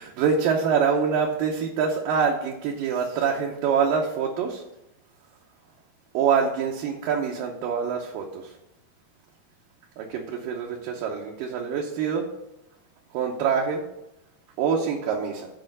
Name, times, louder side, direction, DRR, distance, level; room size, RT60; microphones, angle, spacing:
voice 1, 0.0-4.6 6.1-8.5 10.0-12.2 13.1-13.8 14.6-15.5, right 6 dB, 70° right, -1 dB, 2.4 m, -25 dB
7.8 x 4.9 x 7.3 m, 0.88 s
omnidirectional pair, 4.4 m